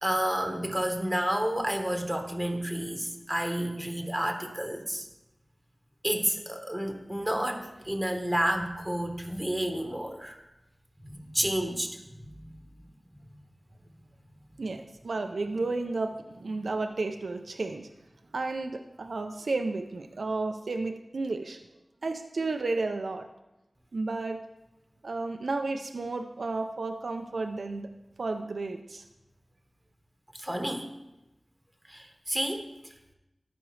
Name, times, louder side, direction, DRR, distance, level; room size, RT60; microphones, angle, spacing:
voice 1, 0.0-5.1 6.0-10.4 11.1-12.0 12.3-12.6 30.3-30.9 31.9-32.7, right 1 dB, 10° right, 4 dB, 1.2 m, -30 dB
voice 2, 14.6-17.9 18.3-21.6 22.0-23.3 23.9-24.4 25.0-27.9 28.2-29.0, right 3 dB, 85° right, 5 dB, 0.4 m, -32 dB
13.5 x 5.1 x 3.2 m, 0.94 s
wide cardioid pair, 45°, 0 cm